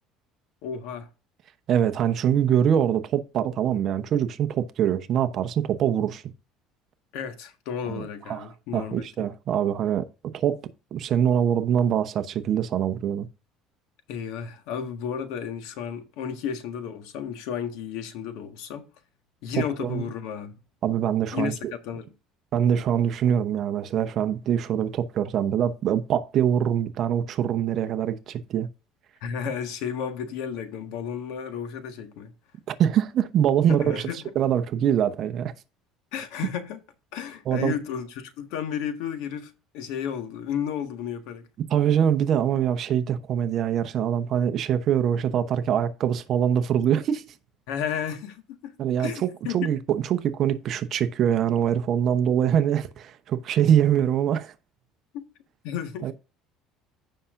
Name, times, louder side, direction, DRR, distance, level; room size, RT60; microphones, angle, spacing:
voice 1, 0.6-1.1 7.1-9.3 14.1-18.9 19.4-20.5 21.3-22.1 29.2-32.3 33.7-34.3 36.1-36.8 37.1-41.5 47.7-49.7 55.1-55.3 55.6-56.1, left 8 dB, 75° left, 1.6 m, -33 dB
voice 2, 1.7-6.2 7.9-10.1 10.3-10.6 10.9-13.3 19.8-20.0 20.8-21.7 22.5-28.7 32.7-34.1 34.3-35.5 37.5-37.7 41.7-47.2 48.8-54.5 56.0-56.1, right 9 dB, 45° right, 0.9 m, -24 dB
15.5 x 5.7 x 2.6 m
cardioid pair, 145°, 0 cm